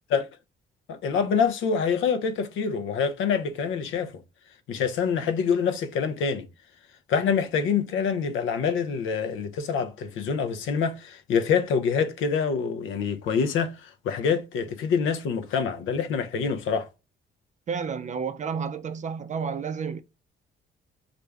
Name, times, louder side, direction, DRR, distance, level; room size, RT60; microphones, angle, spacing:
voice 1, 0.9-4.2 4.7-6.5 7.1-16.9, left 6 dB, 80° left, 0.6 m, -26 dB
voice 2, 17.7-20.0, right 6 dB, 40° right, 0.4 m, -31 dB
3.2 x 2.5 x 3.3 m
cardioid pair, 90°, 20 cm